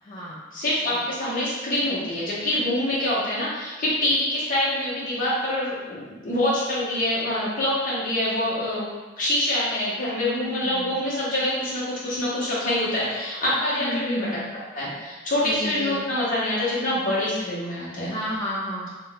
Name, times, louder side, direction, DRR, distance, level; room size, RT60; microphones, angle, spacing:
voice 1, 0.0-0.4 0.9-1.0 10.3-11.0 13.4-13.5 13.8-14.4 15.4-16.0 17.6-17.8 18.1-18.9, equal, 25° left, -7 dB, 0.4 m, -32 dB
voice 2, 0.5-8.9 9.2-14.3 14.7-18.1, left 1 dB, 45° left, -8 dB, 0.9 m, -25 dB
2.5 x 2.2 x 3.8 m, 1.2 s
head